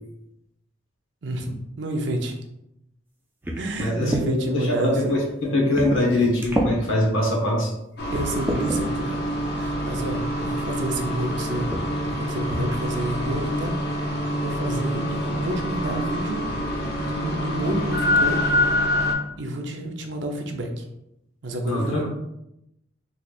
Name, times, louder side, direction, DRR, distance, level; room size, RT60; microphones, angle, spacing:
voice 1, 1.2-2.3 3.6-5.1 8.1-9.2 9.5-11.7 12.1-13.7 14.0-18.8 19.4-20.9 21.4-22.1, right 1 dB, 60° right, 3 dB, 0.6 m, -30 dB
sound 1, 3.4-4.3 5.0-5.1 5.7-6.1 6.4-6.7 7.4-7.5 8.1-8.8 9.9-10.0 10.5-10.8 11.7-11.9 12.2-12.3 12.7-13.0, right 1 dB, 10° right, 0.4 m, -28 dB
voice 2, 3.8-7.7 12.5-12.6 21.7-22.1, left 1 dB, 80° left, -2 dB, 1.2 m, -23 dB
sound 2, 8.0-19.1, left 1 dB, 55° left, 0.6 m, -26 dB
4.2 x 3.2 x 2.4 m, 0.83 s
head